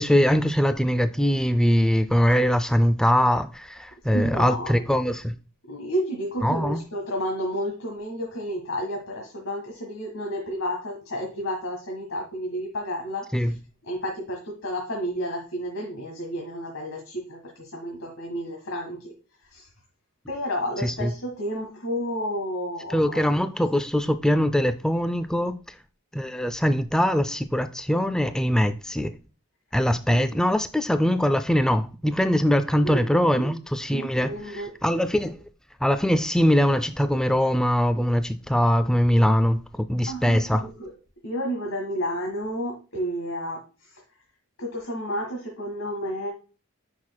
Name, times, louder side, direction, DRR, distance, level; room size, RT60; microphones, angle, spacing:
voice 1, 0.0-5.3 6.4-6.8 13.3-13.5 20.8-21.1 22.9-25.5 26.1-29.1 29.7-34.3 34.8-35.4 35.8-40.7, equal, 5° left, 0.3 m, -22 dB
voice 2, 4.1-4.8 5.7-13.5 13.8-19.1 19.5-19.7 20.3-23.3 30.1-30.3 32.8-33.0 33.3-33.5 33.9-34.7 40.1-40.9 41.2-44.0 44.6-46.3, equal, 65° left, 1.6 m, -31 dB
8.5 x 5.9 x 2.2 m
head